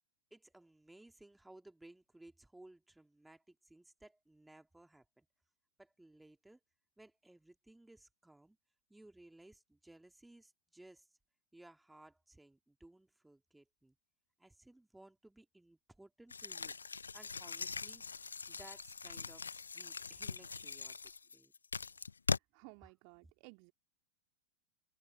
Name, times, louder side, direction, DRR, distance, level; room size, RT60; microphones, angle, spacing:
voice 1, 0.3-5.3 5.8-6.6 7.0-8.6 8.9-11.1 11.5-14.0 14.4-16.7 17.1-21.0 21.3-21.5 22.8-22.9, right 1 dB, 5° right, 2.9 m, -60 dB
sound 1, 16.3-22.4, left 5 dB, 75° left, 0.5 m, -41 dB
voice 2, 22.3-23.7, right 40 dB or more, 45° right, 2.5 m, -57 dB
figure-of-eight pair, 90°, 0 cm